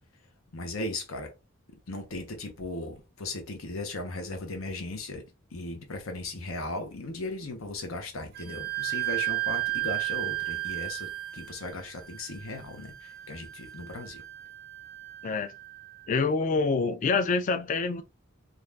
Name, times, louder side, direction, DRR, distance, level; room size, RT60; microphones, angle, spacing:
voice 1, 0.5-1.3 1.9-5.2 5.5-14.2, left 2 dB, 85° left, 0.9 m, -37 dB
Wind instrument woodwind instrument, 8.4-15.8, right 19 dB, 50° right, 0.3 m, -34 dB
voice 2, 16.1-18.0, left 4 dB, 40° left, 0.3 m, -26 dB
2.6 x 2.4 x 3.3 m
head